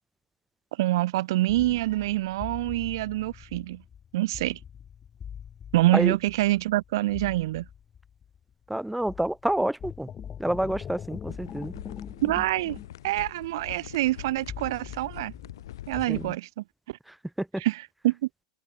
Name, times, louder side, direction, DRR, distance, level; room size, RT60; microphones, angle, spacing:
voice 1, 0.8-3.8 4.1-4.6 5.7-7.7 12.2-12.8 13.0-15.3 15.9-17.0 17.6-18.2, right 17 dB, 70° right, 0.4 m, -26 dB
sound 1, 1.5-8.7 9.0-16.1, left 8 dB, 20° left, 2.5 m, -43 dB
voice 2, 8.7-10.1 10.4-11.7 16.1-16.4 17.4-17.6, right 1 dB, ahead, 0.4 m, -28 dB
sound 2, 11.3-16.4, left 13 dB, 90° left, 5.8 m, -44 dB
supercardioid pair, 155°, 2 cm